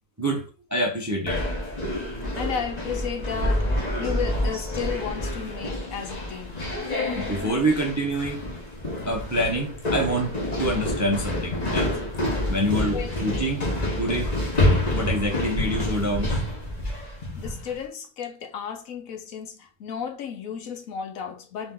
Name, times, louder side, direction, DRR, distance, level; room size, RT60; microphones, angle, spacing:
voice 1, 0.7-1.5 7.2-8.4 9.1-12.0 12.5-13.7 14.0-14.3 14.9-16.4, right 1 dB, 15° right, 0.6 m, -26 dB
sound 1, 1.3-17.7, left 1 dB, 30° left, 1.3 m, -28 dB
voice 2, 2.4-6.6 12.9-13.1 17.4-21.7, left 7 dB, 70° left, 1.1 m, -33 dB
4.0 x 3.0 x 3.7 m
omnidirectional pair, 1.6 m